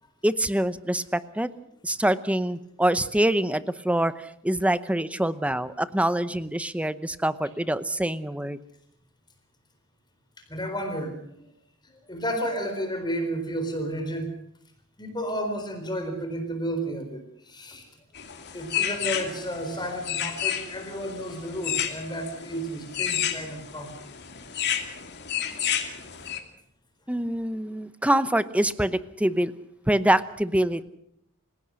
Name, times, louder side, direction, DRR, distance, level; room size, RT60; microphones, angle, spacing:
voice 1, 0.2-1.5 1.8-8.6 27.1-29.5 29.9-30.8, right 1 dB, 5° right, 14 dB, 0.8 m, -25 dB
voice 2, 10.5-11.4 12.1-14.3 15.0-17.9 18.5-24.0, equal, 20° left, 5 dB, 4.2 m, -32 dB
sound 1, 18.1-26.4, left 9 dB, 50° left, 2.6 m, -31 dB
27.5 x 17.0 x 6.4 m, 0.74 s
head